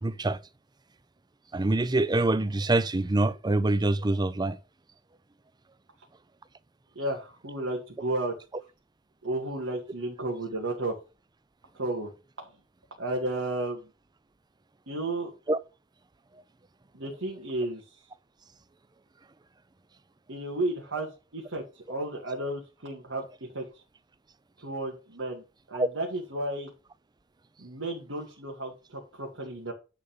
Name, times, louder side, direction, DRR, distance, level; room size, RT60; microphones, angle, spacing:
voice 1, 0.0-0.4 1.5-4.6 15.5-15.6 25.8-25.9, right 2 dB, 20° right, 0.5 m, -25 dB
voice 2, 7.0-8.3 9.2-10.9 11.7-12.1 12.4-12.5 13.0-13.9 14.9-15.3 16.9-18.0 20.3-23.2 23.5-23.8 24.6-26.7 27.6-29.7, right 2 dB, 90° right, 2.1 m, -33 dB
10.0 x 4.2 x 5.2 m
head